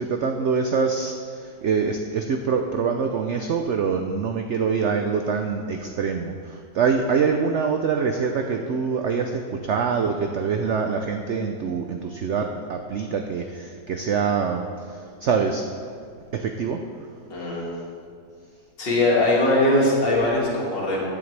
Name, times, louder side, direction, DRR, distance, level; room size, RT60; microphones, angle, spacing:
voice 1, 0.0-15.6 16.3-16.8, right 5 dB, 80° right, 4 dB, 0.6 m, -25 dB
voice 2, 17.3-17.7 18.8-21.0, left 1 dB, 80° left, -4 dB, 2.8 m, -21 dB
15.0 x 8.8 x 3.3 m, 2.2 s
omnidirectional pair, 1.9 m